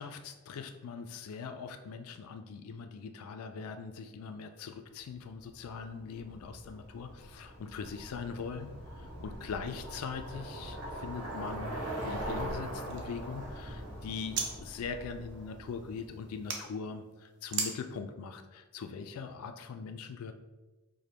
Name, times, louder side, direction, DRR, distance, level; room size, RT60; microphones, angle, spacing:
voice 1, 0.0-8.7 9.0-11.8 12.0-20.3, left 5 dB, 80° left, 8 dB, 0.3 m, -41 dB
Bicycle, 5.5-16.4, right 1 dB, 80° right, 1.4 m, -42 dB
sound 1, 12.4-14.5 14.8-16.6 17.5-17.7, right 4 dB, 50° right, 0.6 m, -40 dB
5.0 x 2.2 x 4.3 m, 1.2 s
head